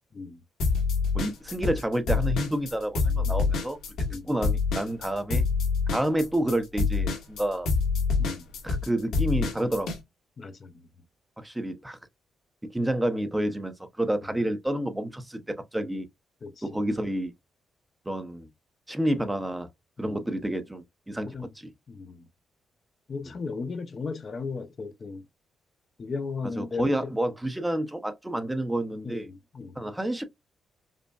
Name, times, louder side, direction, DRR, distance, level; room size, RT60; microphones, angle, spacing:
sound 1, 0.6-1.8 2.1-10.0, left 4 dB, 85° left, 1.4 m, -26 dB
voice 1, 1.1-3.8 4.3-5.5 5.9-7.7 8.6-9.9 11.4-12.0 12.7-16.1 16.6-17.3 18.1-18.5 18.9-19.7 20.0-21.7 26.6-29.3 29.8-30.2, right 1 dB, 10° right, 0.7 m, -29 dB
voice 2, 10.4-10.9 16.4-16.8 20.0-20.2 21.3-21.5 21.9-22.2 23.1-25.2 26.0-27.1 29.0-29.7, left 4 dB, 45° left, 0.5 m, -36 dB
5.2 x 2.1 x 2.3 m
cardioid pair, 85°, 0 cm